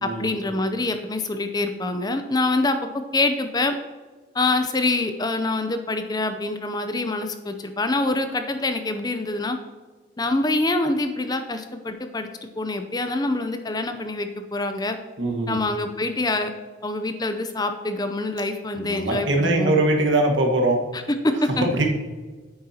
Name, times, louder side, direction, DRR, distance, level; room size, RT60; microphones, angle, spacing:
voice 1, 0.0-2.8 3.1-3.7 4.3-9.6 10.2-15.0 15.5-16.5 16.8-19.8 20.9-21.7, left 2 dB, 20° left, 8 dB, 0.5 m, -25 dB
voice 2, 15.2-15.6 18.8-20.8 21.6-21.9, right 2 dB, 70° right, 1 dB, 1.5 m, -21 dB
9.9 x 8.6 x 2.9 m, 1.4 s
head